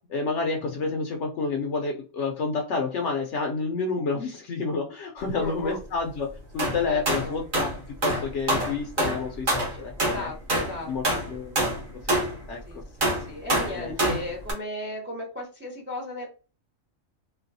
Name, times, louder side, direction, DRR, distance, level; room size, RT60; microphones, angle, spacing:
voice 1, 0.1-6.3 6.5-7.7 8.0-10.3 10.9-11.6 12.1-12.2 12.5-12.6 13.5-14.2, left 4 dB, 70° left, 2 dB, 0.8 m, -29 dB
voice 2, 5.3-5.8 6.9-7.4 9.9-11.3 12.7-12.8 13.3-16.3, left 1 dB, 10° right, -1 dB, 0.6 m, -36 dB
sound 1, 6.6-12.4 13.0-14.5, right 1 dB, 40° right, 1.1 m, -26 dB
4.0 x 2.3 x 2.6 m, 0.36 s
omnidirectional pair, 1.4 m